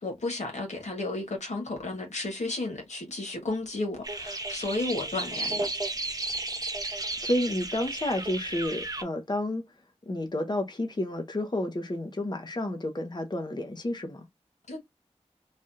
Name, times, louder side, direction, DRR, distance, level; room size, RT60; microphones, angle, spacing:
voice 1, 0.0-5.6 14.7-14.8, left 2 dB, 90° left, 1.4 m, -33 dB
sound 1, 4.0-9.0, right 2 dB, 35° right, 0.7 m, -33 dB
voice 2, 7.2-9.6 10.1-14.3, left 1 dB, 40° left, 0.8 m, -30 dB
3.3 x 2.3 x 2.6 m
wide cardioid pair, 55°, 12 cm